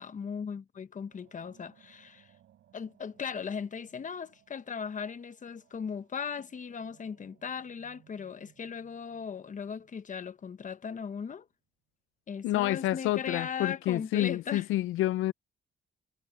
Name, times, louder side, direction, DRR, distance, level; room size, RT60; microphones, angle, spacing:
voice 1, 0.0-2.3 2.7-11.5 12.3-14.7, left 6 dB, 40° left, 1.2 m, -38 dB
sound 1, 1.1-11.2, right 11 dB, 75° right, 7.7 m, -65 dB
voice 2, 12.4-15.3, left 15 dB, 85° left, 0.5 m, -29 dB
cardioid pair, 90°, 20 cm